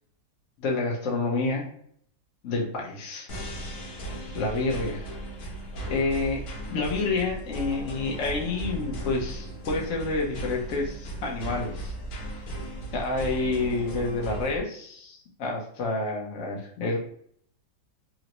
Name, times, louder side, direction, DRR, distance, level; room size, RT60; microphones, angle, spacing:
voice 1, 0.6-1.6 2.4-3.3 4.3-5.1 5.9-11.9 12.9-17.0, left 3 dB, 55° left, -1 dB, 0.9 m, -29 dB
sound 1, 3.3-14.6, right 1 dB, 90° left, 1.7 m, -36 dB
3.8 x 2.1 x 2.9 m, 0.62 s
omnidirectional pair, 2.1 m